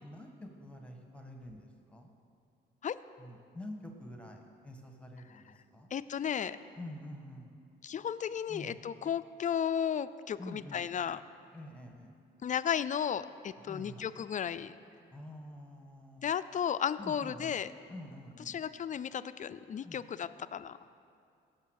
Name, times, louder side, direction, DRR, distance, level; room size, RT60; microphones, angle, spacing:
voice 1, 0.0-2.2 3.2-5.9 6.8-7.5 8.5-8.7 10.4-10.8 11.5-12.1 13.6-14.0 15.1-16.3 17.0-17.5 17.9-18.5 19.8-20.0, left 1 dB, 5° left, 2 dB, 1.5 m, -47 dB
voice 2, 5.9-6.6 7.8-11.2 12.4-14.7 16.2-17.7 18.5-20.8, left 8 dB, 40° left, 13 dB, 0.5 m, -34 dB
17.0 x 6.8 x 6.5 m, 2.4 s
cardioid pair, 90°, 20 cm